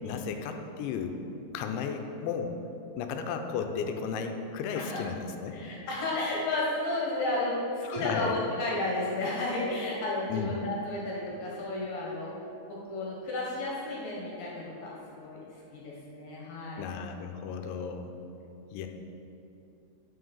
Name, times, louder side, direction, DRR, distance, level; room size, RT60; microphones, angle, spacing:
voice 1, 0.0-1.2 1.5-2.5 3.0-5.6 7.8-8.3 10.3-10.6 16.8-18.1 18.7-18.9, left 6 dB, 85° left, 5 dB, 3.0 m, -34 dB
voice 2, 5.5-12.3 12.7-16.9, left 2 dB, 60° left, -4 dB, 2.8 m, -33 dB
11.5 x 6.6 x 5.5 m, 2.9 s
omnidirectional pair, 5.2 m